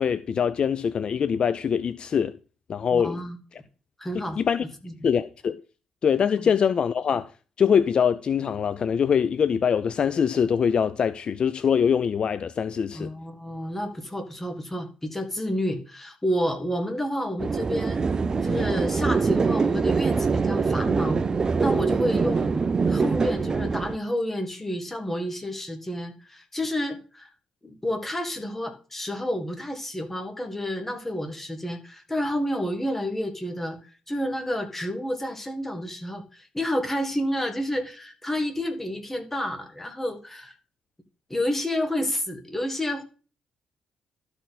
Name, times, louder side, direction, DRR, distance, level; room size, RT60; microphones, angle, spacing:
voice 1, 0.0-2.4 2.7-3.2 4.1-4.6 5.0-5.6 6.0-7.3 7.6-13.1, left 7 dB, 50° left, 0.4 m, -23 dB
voice 2, 2.9-3.4 4.0-4.4 4.8-5.1 6.4-6.5 12.9-18.0 18.4-21.2 21.6-22.6 22.9-27.3 27.6-33.8 34.1-40.5 41.3-43.0, equal, 10° left, 1.6 m, -30 dB
sound 1, 17.4-24.0, right 5 dB, 35° right, 0.4 m, -24 dB
12.5 x 4.4 x 4.1 m
cardioid pair, 95°, 2 cm